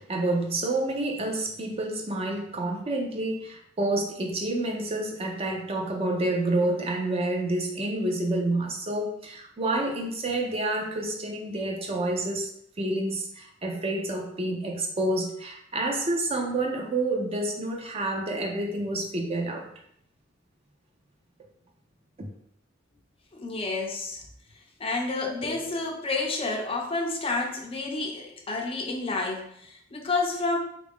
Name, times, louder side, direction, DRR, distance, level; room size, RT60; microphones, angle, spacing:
voice 1, 0.0-12.5 12.8-19.7 22.2-22.3, right 2 dB, 30° right, 1 dB, 0.5 m, -28 dB
voice 2, 23.3-24.2 24.8-30.6, left 3 dB, 30° left, 1 dB, 0.5 m, -30 dB
3.5 x 2.4 x 3.5 m, 0.71 s
head